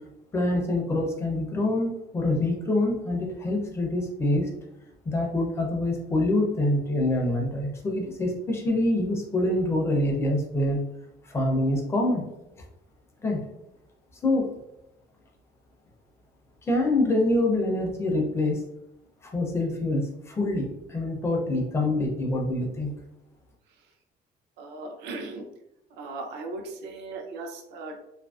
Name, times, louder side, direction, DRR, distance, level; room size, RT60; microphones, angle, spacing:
voice 1, 0.3-4.5 5.1-10.8 11.2-12.2 13.2-13.5 14.2-14.5 16.6-18.6 19.2-22.9, left 1 dB, 15° left, 0 dB, 0.4 m, -25 dB
voice 2, 24.6-25.4 26.0-28.0, right 3 dB, 80° right, 3 dB, 0.5 m, -37 dB
2.6 x 2.5 x 2.3 m, 0.87 s
cardioid pair, 170°, 17 cm